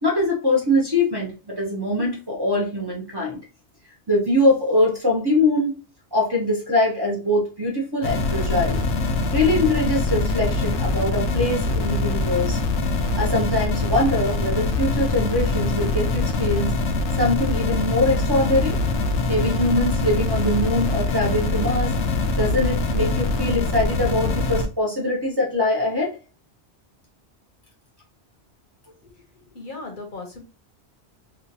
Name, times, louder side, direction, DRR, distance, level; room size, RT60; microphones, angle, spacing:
voice 1, 0.0-3.4 4.1-5.8 6.1-8.8 9.3-12.6 13.1-16.8 17.2-18.8 19.3-21.9 22.4-26.1, left 1 dB, 25° right, -4 dB, 0.6 m, -22 dB
sound 1, 8.0-24.7, left 3 dB, 85° left, 0.9 m, -23 dB
voice 2, 29.5-30.4, left 3 dB, 55° left, 2 dB, 0.8 m, -37 dB
2.9 x 2.3 x 2.7 m, 0.32 s
omnidirectional pair, 1.1 m